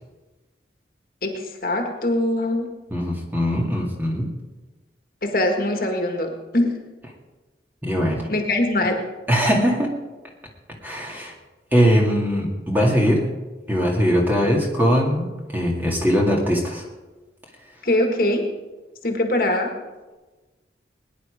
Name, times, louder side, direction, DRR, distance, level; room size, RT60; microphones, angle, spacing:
voice 1, 1.2-2.7 5.2-6.8 8.3-9.0 17.8-18.5 19.0-19.7, left 1 dB, 50° left, 3 dB, 1.8 m, -22 dB
voice 2, 2.9-4.3 7.8-8.2 9.3-9.9 10.8-11.3 11.7-13.3 13.7-15.3 15.5-16.8, equal, 10° right, -1 dB, 2.0 m, -20 dB
20.0 x 10.5 x 5.0 m, 1.2 s
head